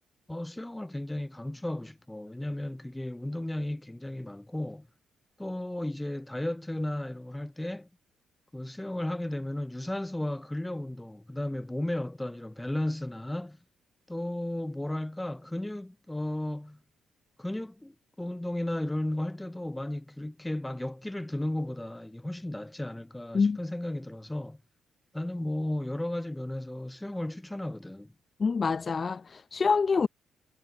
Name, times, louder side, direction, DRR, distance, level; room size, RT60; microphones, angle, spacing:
voice 1, 0.3-4.9 5.4-7.9 8.5-13.6 14.1-16.8 17.4-24.6 25.1-28.1, left 1 dB, 10° left, 3.7 m, -34 dB
voice 2, 28.4-30.1, left 5 dB, 35° left, 0.5 m, -26 dB
cardioid pair, 90°, 0 cm